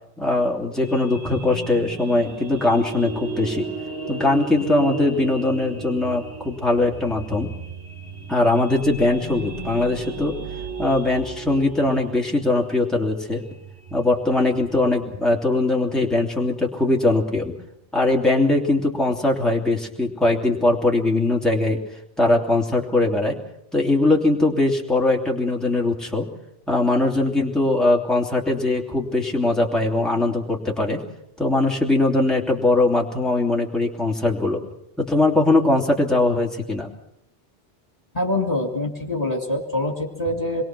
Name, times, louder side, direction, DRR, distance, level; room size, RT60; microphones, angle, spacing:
voice 1, 0.2-3.7 4.1-7.5 8.3-10.3 10.8-13.4 13.9-17.5 17.9-21.8 22.2-23.4 23.7-26.3 26.7-31.0 31.4-34.6 35.0-36.9, left 2 dB, ahead, -2 dB, 2.9 m, -21 dB
sound 1, 0.8-14.9, right 4 dB, 70° right, 5.9 m, -34 dB
voice 2, 38.1-40.6, left 1 dB, 35° left, 2 dB, 2.7 m, -25 dB
27.0 x 22.0 x 6.2 m, 0.78 s
omnidirectional pair, 1.1 m